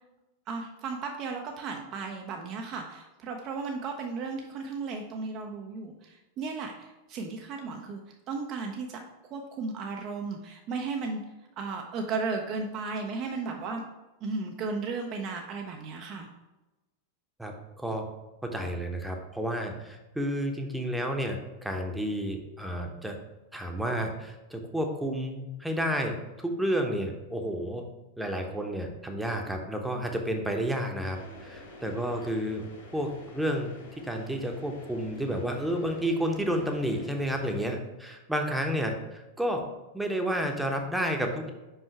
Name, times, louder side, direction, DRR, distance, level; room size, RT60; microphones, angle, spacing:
voice 1, 0.5-8.0 8.3-9.0 9.3-11.2 11.6-13.8 14.2-16.3, right 4 dB, 35° right, 3 dB, 0.7 m, -35 dB
voice 2, 17.4-18.0 18.5-23.2 23.5-27.8 28.2-32.7 32.9-33.7 34.0-39.6 39.9-41.5, equal, 5° right, 3 dB, 1.0 m, -31 dB
sound 1, 31.1-37.7, left 1 dB, 60° left, 2.5 m, -48 dB
5.6 x 5.4 x 4.6 m, 1.0 s
figure-of-eight pair, 90°, 0 cm